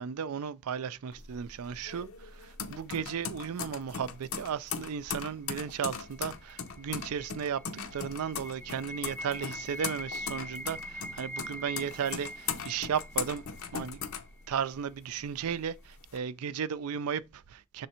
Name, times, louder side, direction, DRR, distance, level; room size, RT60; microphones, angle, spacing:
voice 1, 0.0-7.6 7.9-13.4 13.7-14.0 14.5-17.9, right 7 dB, 75° right, 0.4 m, -35 dB
sound 1, 1.1-14.9 15.3-16.2, left 7 dB, 65° left, 0.7 m, -39 dB
sound 2, 5.7-14.7, equal, 5° left, 0.4 m, -44 dB
6.6 x 3.4 x 4.3 m
head